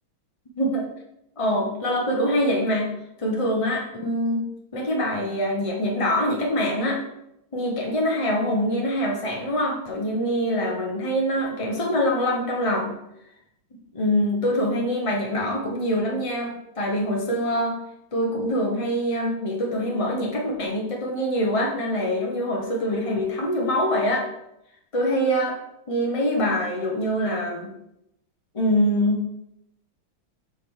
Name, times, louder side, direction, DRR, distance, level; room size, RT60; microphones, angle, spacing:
voice 1, 0.6-0.9 1.4-2.9 3.2-4.4 4.7-7.0 7.5-13.0 13.9-17.8 18.1-24.3 24.9-25.6 25.9-27.7 28.5-29.2, equal, 35° left, -1 dB, 0.5 m, -24 dB
7.5 x 3.5 x 6.3 m, 0.82 s
omnidirectional pair, 2.3 m